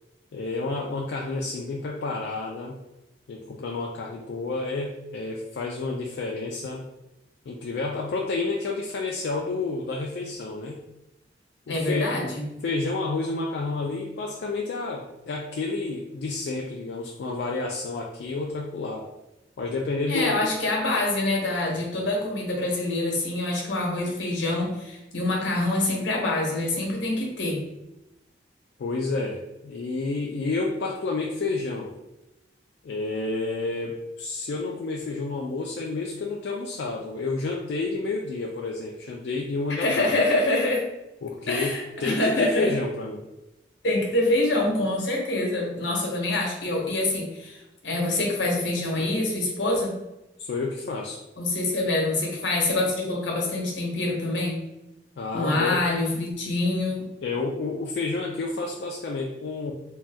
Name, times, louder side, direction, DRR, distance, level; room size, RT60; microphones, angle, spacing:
voice 1, 0.3-2.8 3.3-6.8 7.5-10.8 11.7-12.2 12.6-19.1 19.6-20.4 28.8-31.9 32.8-40.1 41.2-43.2 50.4-51.2 55.2-55.9 57.2-59.7, left 3 dB, 65° left, -1 dB, 0.3 m, -30 dB
voice 2, 11.7-12.5 20.1-27.7 39.8-40.8 41.5-42.7 43.8-49.9 51.4-54.7 55.3-57.0, left 2 dB, 85° left, -1 dB, 0.9 m, -25 dB
2.6 x 2.2 x 3.3 m, 0.95 s
head